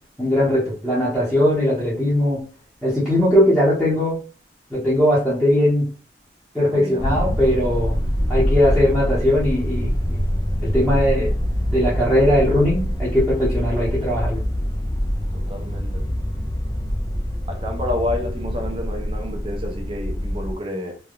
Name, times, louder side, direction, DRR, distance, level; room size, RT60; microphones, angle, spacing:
voice 1, 0.2-2.4 2.8-4.1 4.7-5.9 6.5-8.0 8.3-10.2 10.6-11.3 11.7-14.4, left 1 dB, ahead, 0.9 m, -19 dB
voice 2, 6.7-7.0 15.3-16.0 17.5-21.0, left 1 dB, 30° right, 0.6 m, -29 dB
sound 1, 7.0-20.5, equal, 20° left, 0.3 m, -24 dB
3.2 x 2.2 x 2.4 m
head